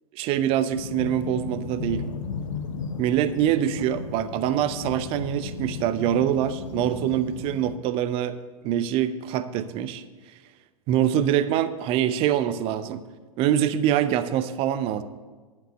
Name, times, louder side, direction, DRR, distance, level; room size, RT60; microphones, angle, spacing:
voice 1, 0.1-2.0 3.0-10.0 10.9-13.0 13.4-15.0, right 10 dB, 30° right, 12 dB, 0.5 m, -24 dB
sound 1, 0.7-7.8, left 5 dB, 60° left, 0.8 m, -35 dB
11.5 x 5.3 x 7.9 m, 1.4 s
figure-of-eight pair, 100°, 19 cm